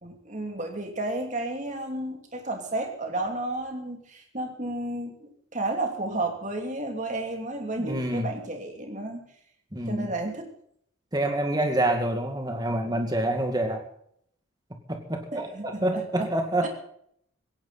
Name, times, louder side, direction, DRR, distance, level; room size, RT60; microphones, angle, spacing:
voice 1, 0.0-9.2 9.9-10.5 15.3-16.3 16.6-16.7, right 2 dB, 35° right, 3 dB, 2.9 m, -32 dB
voice 2, 7.8-8.3 9.7-10.1 11.1-13.9 14.9-16.7, right 1 dB, 20° right, 4 dB, 2.2 m, -27 dB
18.0 x 16.0 x 4.2 m, 0.67 s
head